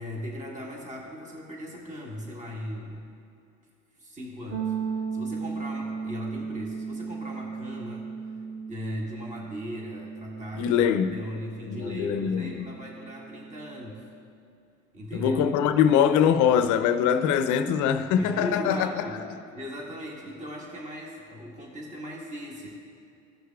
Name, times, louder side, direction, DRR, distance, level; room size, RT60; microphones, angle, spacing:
voice 1, 0.0-3.1 4.0-8.1 8.7-10.8 11.1-14.0 14.9-15.4 18.2-19.2 19.5-22.7, equal, 20° right, 1.8 m, -38 dB
sound 1, 4.5-14.2, right 5 dB, 45° right, 2.0 m, -36 dB
voice 2, 10.6-11.2 11.7-12.8 15.1-19.1, left 8 dB, 55° left, 0.6 m, -23 dB
16.5 x 6.5 x 2.3 m
supercardioid pair, 95°, 36 cm